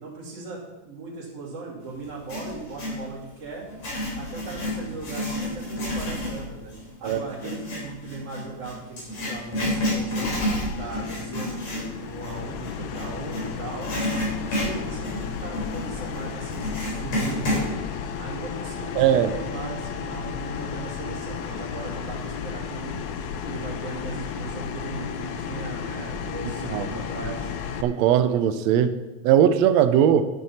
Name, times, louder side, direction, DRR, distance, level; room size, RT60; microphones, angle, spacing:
voice 1, 0.0-3.7 4.2-6.7 7.0-10.3 10.7-13.9 14.5-17.8 18.2-23.0 23.5-27.5, right 3 dB, 50° right, -10 dB, 3.7 m, -38 dB
Writing, 2.0-3.0 3.6-13.4 13.8-17.7, left 1 dB, 55° left, 5.0 m, -30 dB
sound 1, 10.2-27.8, left 7 dB, 75° left, 1.9 m, -33 dB
voice 2, 19.0-19.3 26.7-26.9 27.2-27.3 27.8-29.0 29.2-30.3, right 9 dB, 80° right, 10 dB, 1.6 m, -19 dB
12.0 x 9.7 x 4.2 m, 1.1 s
omnidirectional pair, 3.7 m